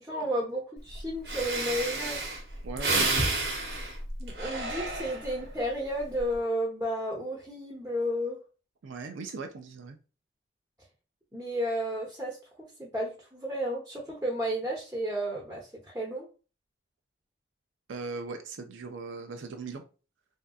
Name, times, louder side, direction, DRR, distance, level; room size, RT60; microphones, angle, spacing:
voice 1, 0.0-2.3 4.2-8.4 11.3-15.7 15.9-16.3, equal, 10° right, 0.8 m, -32 dB
Breathing, 0.9-1.0 1.3-5.5 6.0-6.3, right 2 dB, 55° right, 0.9 m, -31 dB
voice 2, 2.6-3.5 8.8-10.0 17.9-19.8, right 4 dB, 85° right, 0.5 m, -39 dB
3.3 x 2.8 x 2.3 m
head